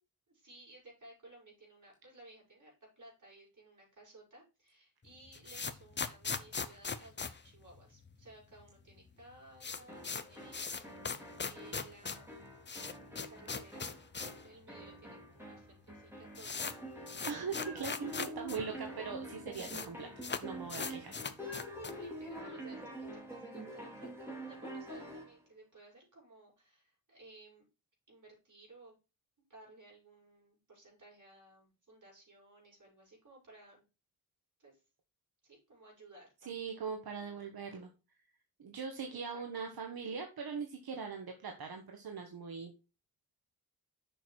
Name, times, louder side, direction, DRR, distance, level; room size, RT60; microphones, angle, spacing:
voice 1, 0.3-12.5 12.8-12.9 13.3-16.8 21.9-27.6 28.1-29.0 29.5-33.9 34.6-34.8 35.4-36.7 39.1-39.7, right 2 dB, 55° right, -3 dB, 5.5 m, -58 dB
sound 1, 5.1-8.3 8.6-8.7 8.9-9.0 9.3-14.5 14.8-14.9 15.6-15.7 15.9-18.6 18.9-19.0 19.1-19.9 20.2-22.1, left 5 dB, 30° left, 0.6 m, -40 dB
sound 2, 9.9-25.4, right 1 dB, 5° right, 3.0 m, -46 dB
voice 2, 17.3-20.1 20.4-21.1 36.5-37.9 38.6-42.7, right 5 dB, 90° right, 3 dB, 1.3 m, -41 dB
6.9 x 6.0 x 4.5 m, 0.30 s
wide cardioid pair, 135°, 36 cm